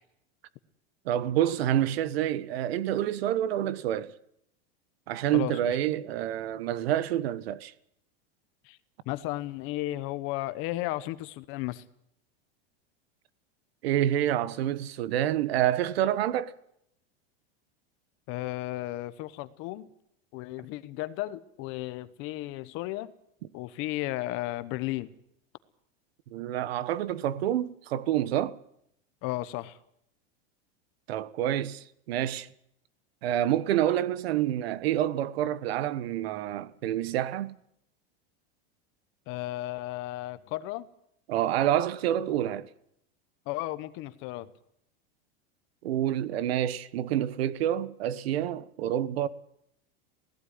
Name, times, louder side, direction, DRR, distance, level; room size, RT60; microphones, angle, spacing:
voice 1, 1.0-4.1 5.1-7.7 13.8-16.5 26.3-28.6 31.1-32.5 33.2-37.6 41.3-42.7 45.8-49.3, right 11 dB, 80° right, 1.2 m, -28 dB
voice 2, 5.3-5.8 8.6-8.8 9.0-11.8 18.3-19.9 20.3-23.1 23.5-25.1 29.2-29.8 39.3-40.9 43.5-44.5, left 17 dB, 45° left, 1.1 m, -34 dB
17.5 x 16.0 x 9.5 m
supercardioid pair, 150°, 30 cm